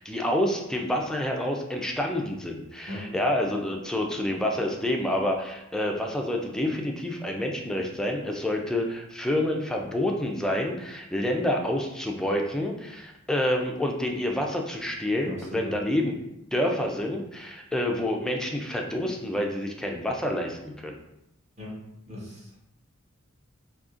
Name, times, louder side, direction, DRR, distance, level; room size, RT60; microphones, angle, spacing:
voice 1, 0.0-16.1 16.5-21.0, left 1 dB, 5° left, 1 dB, 0.3 m, -28 dB
voice 2, 15.2-15.7 21.6-21.8 22.1-22.5, left 1 dB, 35° right, -6 dB, 1.1 m, -38 dB
3.7 x 2.7 x 2.5 m, 0.86 s
head